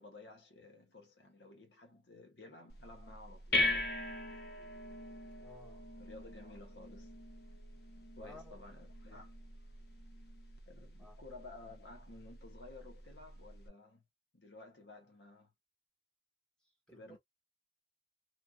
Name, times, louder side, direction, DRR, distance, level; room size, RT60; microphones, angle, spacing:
voice 1, 0.0-3.9 6.0-7.2 8.2-9.4 10.7-14.0 14.3-15.5 16.9-17.2, left 3 dB, 85° left, 1.1 m, -54 dB
sound 1, 2.7-13.7, left 2 dB, 65° left, 0.6 m, -41 dB
voice 2, 5.4-5.9 8.2-8.6 11.0-11.2 16.9-17.2, left 1 dB, 5° left, 1.1 m, -56 dB
3.1 x 2.6 x 2.2 m
head